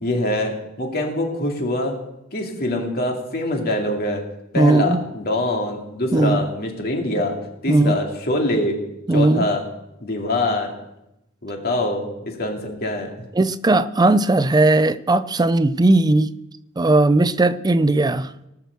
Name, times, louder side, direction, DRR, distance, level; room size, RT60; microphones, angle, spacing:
voice 1, 0.0-1.9 2.3-4.2 4.5-7.4 7.6-8.8 9.1-9.6 10.0-10.7 11.4-13.3, left 1 dB, 50° left, 2.4 m, -24 dB
voice 2, 4.6-5.0 6.1-6.5 7.7-8.0 9.1-9.5 13.4-16.3 16.8-18.3, right 2 dB, 20° right, 0.4 m, -17 dB
18.5 x 6.2 x 6.8 m
head